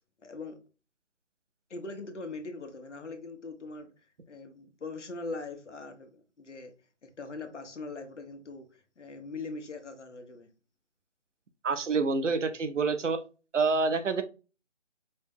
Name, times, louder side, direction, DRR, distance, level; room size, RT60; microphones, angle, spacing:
voice 1, 0.2-0.6 1.7-3.9 4.3-6.7 7.0-10.5, left 3 dB, 75° left, 1.1 m, -41 dB
voice 2, 11.6-13.2 13.5-14.2, right 4 dB, 80° right, 0.8 m, -27 dB
5.1 x 2.0 x 3.6 m
figure-of-eight pair, 170°, 36 cm